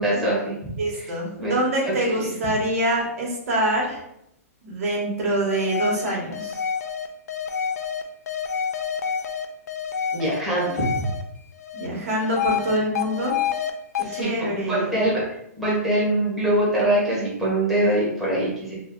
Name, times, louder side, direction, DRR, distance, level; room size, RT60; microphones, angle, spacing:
voice 1, 0.0-1.0 1.4-1.6 1.8-2.1 10.1-11.1 14.0-15.2 15.6-18.7, right 1 dB, ahead, -8 dB, 1.4 m, -23 dB
voice 2, 0.8-4.0 4.6-6.6 11.8-13.5 14.1-14.9, right 1 dB, 65° right, -3 dB, 1.4 m, -25 dB
sound 1, 5.5-11.2 11.6-13.7 14.0-14.2, left 7 dB, 90° left, 0.5 m, -28 dB
3.0 x 2.7 x 3.8 m, 0.78 s
hypercardioid pair, 155°, 8 cm